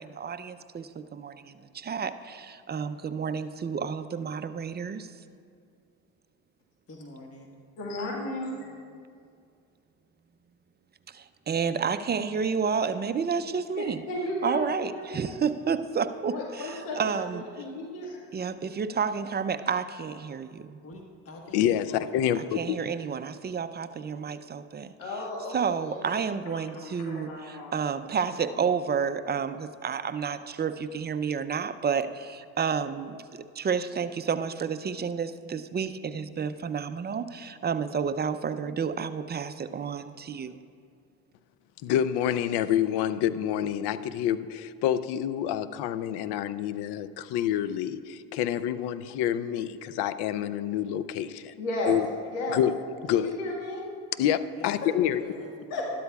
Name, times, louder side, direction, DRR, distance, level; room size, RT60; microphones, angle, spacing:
voice 1, 0.0-5.3 11.1-14.1 14.4-17.7 18.3-20.8 22.3-40.6, right 6 dB, 25° right, 0.5 m, -31 dB
voice 2, 6.9-7.5 20.8-22.6 54.5-55.9, left 2 dB, 35° left, 1.4 m, -46 dB
voice 3, 7.8-8.7 13.8-15.4 16.3-18.2 25.0-25.6 25.8-26.0 26.5-27.7 51.6-52.0 52.3-52.6 53.1-53.8 54.8-54.9 55.7-55.9, left 1 dB, 85° left, 1.8 m, -34 dB
voice 4, 21.5-22.8 41.8-51.5 51.9-52.1 52.5-52.7 53.0-53.3 54.2-55.2, left 10 dB, 70° left, 0.6 m, -27 dB
12.5 x 12.5 x 2.4 m
supercardioid pair, 70°, 41 cm